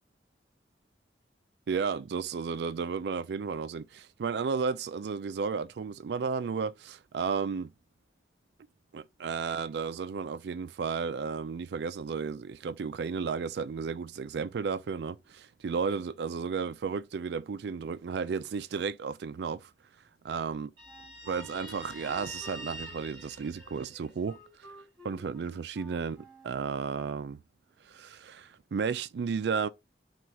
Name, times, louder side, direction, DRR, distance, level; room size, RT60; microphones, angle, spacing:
voice 1, 1.7-7.7 8.9-19.7 20.2-20.7 21.3-24.7 25.0-27.4 27.9-29.7, right 5 dB, 65° right, 0.3 m, -33 dB
Wind instrument woodwind instrument, 20.8-26.7, right 1 dB, 5° left, 2.1 m, -53 dB
Guitar, 20.8-24.3, equal, 30° right, 2.7 m, -46 dB
6.0 x 2.4 x 2.9 m
head